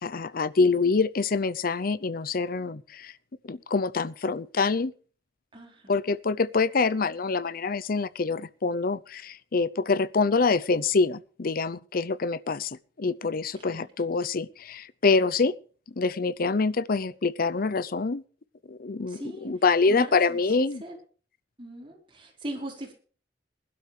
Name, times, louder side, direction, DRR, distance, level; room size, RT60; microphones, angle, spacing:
voice 1, 0.0-3.1 3.4-4.9 5.9-15.5 16.0-18.2 18.7-20.8, left 4 dB, 55° left, 0.6 m, -26 dB
voice 2, 5.5-6.0 13.5-13.9 19.1-19.5 19.9-20.4 20.8-21.0 21.6-22.9, right 1 dB, 30° right, 4.7 m, -40 dB
20.5 x 12.0 x 3.3 m
head